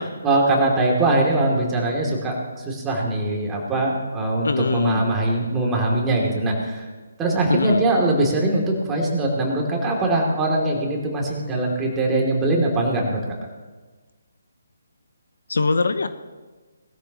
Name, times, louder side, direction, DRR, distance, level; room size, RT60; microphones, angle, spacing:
voice 1, 0.2-6.8 7.2-13.2, right 2 dB, 15° right, -2 dB, 2.9 m, -22 dB
voice 2, 4.4-5.0 7.5-7.8 15.5-16.1, left 4 dB, 65° left, 11 dB, 0.8 m, -22 dB
20.0 x 13.5 x 3.1 m, 1.3 s
figure-of-eight pair, 145°, 0 cm